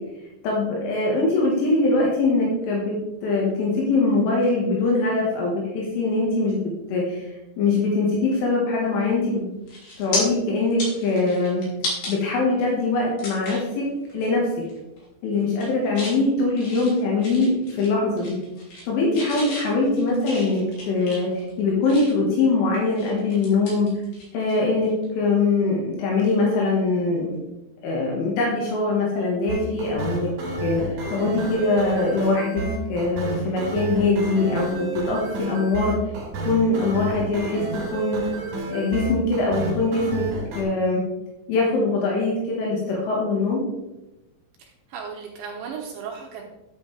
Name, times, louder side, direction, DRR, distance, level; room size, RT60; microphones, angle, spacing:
voice 1, 0.4-3.0 3.2-6.6 6.9-9.5 10.0-11.6 12.1-13.9 14.1-14.5 15.2-18.4 18.9-23.9 24.3-27.3 27.8-30.3 30.6-30.8 31.1-32.6 32.9-36.0 36.5-38.2 38.7-40.3 40.6-41.0 41.5-43.6, left 3 dB, 75° left, -3 dB, 4.1 m, -22 dB
sound 1, 9.1-9.3 9.7-10.2 10.6-12.1 12.6-12.7 13.2-13.7 14.1-14.3 14.6-15.0 15.4-16.2 16.6-17.9 18.2-18.9 19.1-22.3 22.7-24.6 24.8-25.0 26.9-27.1, left 1 dB, 50° left, 4.5 m, -34 dB
sound 2, 29.5-40.6, right 3 dB, 45° right, 3.1 m, -30 dB
voice 2, 44.6-46.4, right 6 dB, 75° right, -1 dB, 3.1 m, -36 dB
10.5 x 8.4 x 3.4 m, 0.97 s
omnidirectional pair, 5.8 m